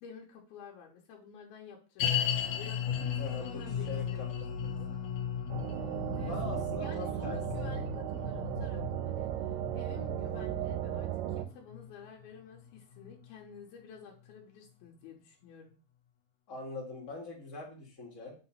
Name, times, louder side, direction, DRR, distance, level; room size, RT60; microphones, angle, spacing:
voice 1, 0.0-4.8 5.8-15.8, left 7 dB, 85° left, -1 dB, 3.0 m, -51 dB
sound 1, 2.0-13.3 13.5-13.6 14.3-14.4, left 8 dB, 65° left, 2.2 m, -36 dB
voice 2, 3.2-3.6 3.9-4.3 4.8-4.9 6.2-7.7 10.2-10.5 16.5-18.3, left 2 dB, 35° left, -2 dB, 1.2 m, -43 dB
sound 2, 5.5-11.4, right 12 dB, 80° right, 2.1 m, -36 dB
8.1 x 2.9 x 5.6 m, 0.37 s
omnidirectional pair, 4.3 m